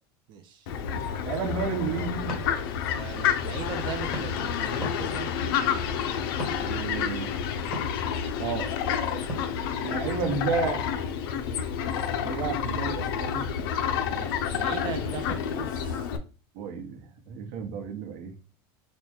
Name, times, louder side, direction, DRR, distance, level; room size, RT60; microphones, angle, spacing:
voice 1, 0.3-0.7 3.0-5.3 9.4-10.0 14.1-16.1, right 7 dB, 40° right, 0.5 m, -39 dB
Fowl, 0.7-16.2, left 8 dB, 80° left, 0.6 m, -29 dB
voice 2, 0.9-2.4 6.6-7.4 8.4-8.7 9.8-10.9 12.2-13.4 16.5-18.4, right 5 dB, 65° right, 1.0 m, -32 dB
sound 1, 1.5-13.7, equal, 5° left, 1.3 m, -44 dB
4.1 x 2.2 x 3.3 m
supercardioid pair, 160°, 12 cm